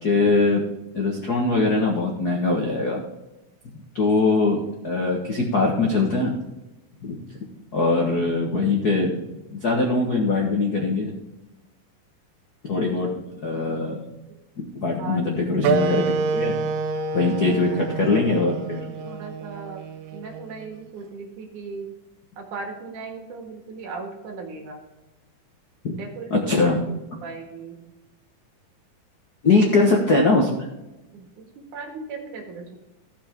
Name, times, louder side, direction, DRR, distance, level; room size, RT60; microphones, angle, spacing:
voice 1, 0.0-0.6 0.9-3.0 3.9-6.3 7.0-7.2 7.7-9.2 9.5-11.1 12.6-13.1 13.4-14.0 14.6-16.5 17.1-18.9 25.8-25.9 26.3-26.8 29.4-30.5, left 3 dB, 75° left, 0 dB, 0.8 m, -21 dB
voice 2, 12.8-13.1 14.9-15.2 17.4-17.8 19.0-21.9 22.4-24.8 25.9-26.7 27.2-27.8 29.5-29.9 31.1-32.8, right 4 dB, 65° right, 2 dB, 3.1 m, -37 dB
Wind instrument woodwind instrument, 15.6-20.7, right 4 dB, 80° right, 2.5 m, -27 dB
15.0 x 7.0 x 3.6 m, 1.0 s
omnidirectional pair, 4.0 m